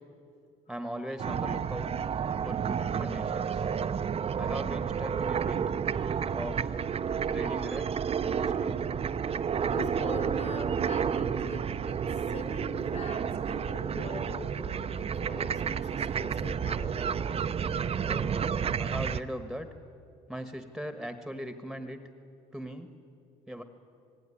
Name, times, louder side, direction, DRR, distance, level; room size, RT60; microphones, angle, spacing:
voice 1, 0.7-2.1 2.4-3.7 4.4-5.6 6.3-6.7 7.3-7.9 8.2-8.8 18.0-18.3 18.8-19.7 20.3-22.0 22.5-22.9 23.5-23.6, equal, ahead, 7 dB, 1.4 m, -39 dB
sound 1, 1.2-19.2, right 7 dB, 35° right, 0.7 m, -31 dB
voice 2, 9.6-17.2, left 3 dB, 45° left, 6 dB, 4.5 m, -43 dB
27.0 x 19.5 x 9.9 m, 2.5 s
cardioid pair, 110°, 17 cm